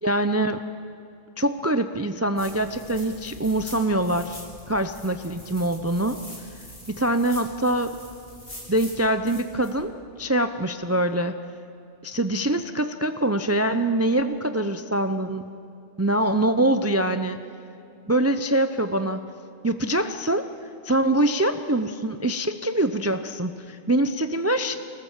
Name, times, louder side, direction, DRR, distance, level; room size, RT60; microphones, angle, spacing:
voice 1, 0.0-0.6 1.4-6.2 6.9-7.9 8.7-9.9 10.2-11.3 12.0-15.5 16.0-17.4 18.1-19.3 19.6-20.5 20.8-24.8, right 1 dB, 20° right, 9 dB, 0.4 m, -24 dB
sound 1, 2.4-9.7, left 1 dB, 45° left, 7.0 m, -44 dB
24.5 x 19.5 x 7.4 m, 2.6 s
omnidirectional pair, 1.2 m